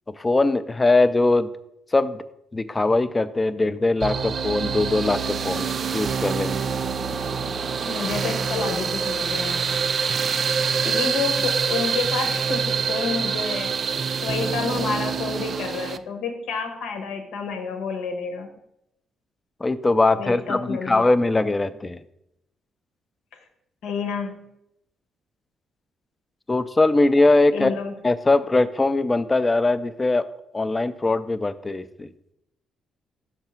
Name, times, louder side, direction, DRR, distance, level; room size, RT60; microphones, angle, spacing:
voice 1, 0.2-1.5 1.9-2.2 2.5-5.7 5.9-6.6 19.6-22.0 26.5-27.7 28.0-30.3 30.5-32.1, left 2 dB, 20° left, 13 dB, 0.4 m, -21 dB
sound 1, 4.0-16.0, right 6 dB, 50° right, 0.3 m, -26 dB
voice 2, 7.9-9.8 10.8-18.5 20.2-21.0 23.8-24.5 27.5-28.0, left 5 dB, 85° left, 4 dB, 1.1 m, -29 dB
5.9 x 3.6 x 5.7 m, 0.81 s
cardioid pair, 90°, 0 cm